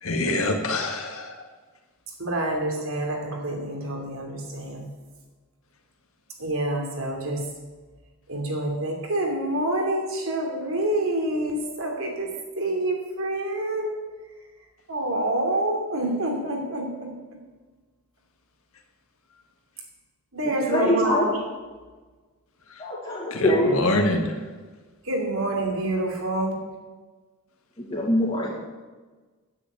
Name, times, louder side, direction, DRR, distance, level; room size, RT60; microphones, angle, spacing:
voice 1, 0.0-1.4 23.3-24.4, left 1 dB, 70° left, 3 dB, 1.8 m, -25 dB
voice 2, 2.2-4.9 6.4-7.5 8.3-14.1 14.9-17.4 20.3-21.4 25.0-26.6, right 1 dB, 65° right, 1 dB, 3.0 m, -27 dB
voice 3, 20.7-21.2 22.8-23.8 27.8-28.5, left 1 dB, 25° left, -5 dB, 2.3 m, -23 dB
9.8 x 9.6 x 8.7 m, 1.3 s
head